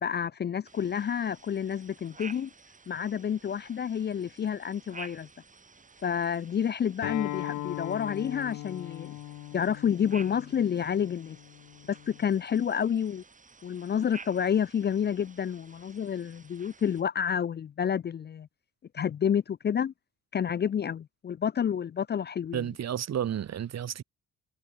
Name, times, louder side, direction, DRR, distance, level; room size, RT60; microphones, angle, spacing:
voice 1, 0.0-2.5 2.9-5.3 6.0-9.1 9.5-11.4 11.9-13.2 13.6-18.5 18.9-19.9 20.3-22.7, left 8 dB, 35° left, 0.5 m, -29 dB
sound 1, 0.6-17.0, right 4 dB, 25° right, 2.4 m, -52 dB
Acoustic guitar, 7.0-12.2, left 16 dB, 80° left, 1.2 m, -39 dB
voice 2, 22.5-24.0, right 9 dB, 60° right, 2.6 m, -31 dB
cardioid pair, 90°, 30 cm